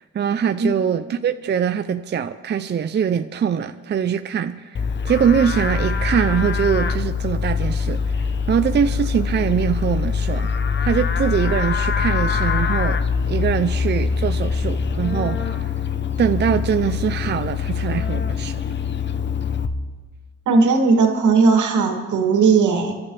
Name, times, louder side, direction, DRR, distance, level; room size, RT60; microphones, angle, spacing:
voice 1, 0.0-10.5 10.8-13.0 13.3-15.7 16.2-18.6, right 7 dB, 35° right, 9 dB, 0.6 m, -23 dB
Livestock farm animals working animals, 4.7-19.7, left 5 dB, 40° left, 0.9 m, -23 dB
voice 2, 20.5-22.9, right 4 dB, 75° right, 2 dB, 2.7 m, -17 dB
28.5 x 11.5 x 3.4 m, 1.4 s
cardioid pair, 90°, 30 cm